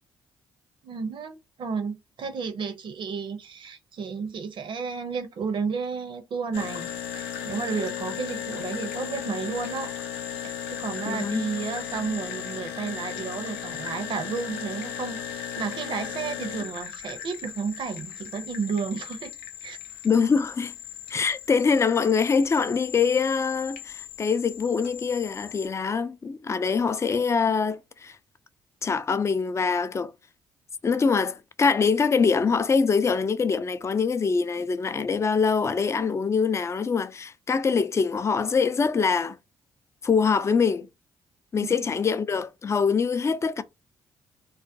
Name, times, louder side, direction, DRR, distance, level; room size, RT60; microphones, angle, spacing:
voice 1, 0.8-10.0 10.3-19.3 19.6-19.8 41.6-41.7, right 5 dB, 55° right, 0.6 m, -32 dB
sound 1, 6.5-25.7, left 9 dB, 90° left, 0.4 m, -36 dB
voice 2, 11.1-11.4 20.0-20.7 21.1-28.2 28.8-30.1 30.8-39.4 40.0-40.9 41.5-43.6, left 5 dB, 30° left, 0.4 m, -24 dB
2.3 x 2.1 x 2.6 m
supercardioid pair, 55°, 10 cm